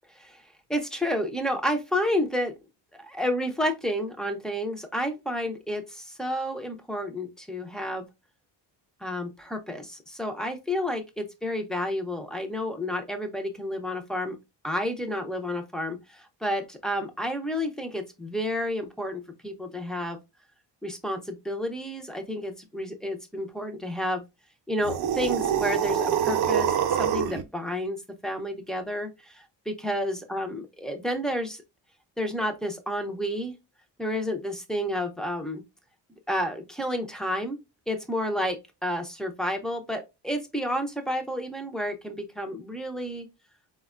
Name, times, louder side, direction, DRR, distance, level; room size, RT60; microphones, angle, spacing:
voice 1, 0.7-2.5 2.9-8.0 9.0-14.4 14.6-20.2 20.8-24.2 24.7-31.6 32.2-33.6 34.0-35.6 36.3-37.6 37.9-43.3, equal, ahead, 0.3 m, -30 dB
sound 1, 24.8-27.4, right 8 dB, 60° right, 0.5 m, -25 dB
4.2 x 2.1 x 2.3 m
cardioid pair, 160°, 44 cm